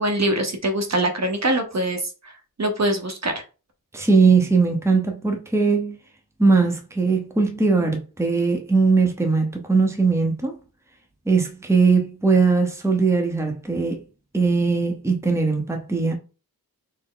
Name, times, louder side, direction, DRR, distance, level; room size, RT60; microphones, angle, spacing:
voice 1, 0.0-2.3 2.6-3.3, right 1 dB, 45° right, 0.8 m, -23 dB
voice 2, 3.9-6.0 6.4-10.6 11.3-14.0 14.3-16.1, right 4 dB, 5° right, 0.7 m, -20 dB
4.2 x 2.1 x 3.8 m
wide cardioid pair, 85°, 37 cm